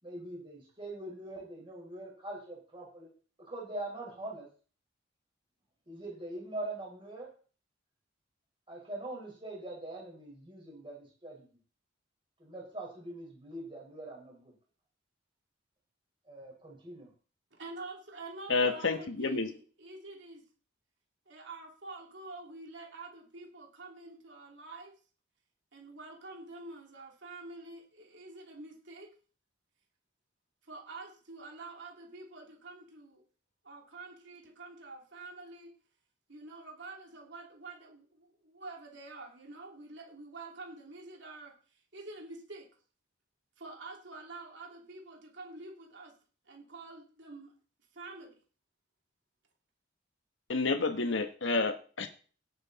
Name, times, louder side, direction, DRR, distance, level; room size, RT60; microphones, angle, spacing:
voice 1, 0.0-3.1 3.5-4.5 5.9-7.3 8.7-11.5 12.4-14.5 16.3-17.1, right 2 dB, 25° right, -1 dB, 5.0 m, -43 dB
voice 2, 17.5-20.4 21.3-24.9 25.7-29.1 30.6-33.2 33.6-35.7 36.3-42.7 43.6-46.1 46.4-47.5 47.9-48.4, right 2 dB, 65° right, 0 dB, 3.2 m, -47 dB
voice 3, 18.5-19.5 50.5-52.1, left 3 dB, 80° left, 7 dB, 1.4 m, -29 dB
17.5 x 8.0 x 4.1 m, 0.40 s
head